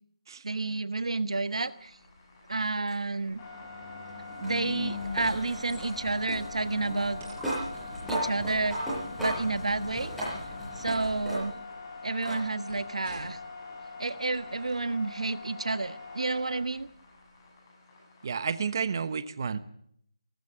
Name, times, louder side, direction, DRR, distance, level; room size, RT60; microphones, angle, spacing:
voice 1, 0.4-2.0 2.5-3.4 4.4-7.2 8.1-8.8 9.2-10.1 10.7-11.6 12.0-13.4 14.0-16.9, right 3 dB, 90° right, 13 dB, 1.4 m, -30 dB
sound 1, 1.5-19.1, left 4 dB, 25° left, 6.8 m, -45 dB
sound 2, 2.9-11.8 12.2-12.4 13.7-13.8 16.7-16.8, equal, ahead, 6.6 m, -37 dB
sound 3, 5.0-6.0 7.2-8.3 9.4-10.7 12.6-13.5 14.3-14.8, right 2 dB, 20° right, 6.7 m, -50 dB
voice 2, 18.2-19.6, right 6 dB, 40° right, 12 dB, 1.0 m, -31 dB
18.5 x 14.5 x 9.9 m, 0.69 s
hypercardioid pair, 170°, 3 cm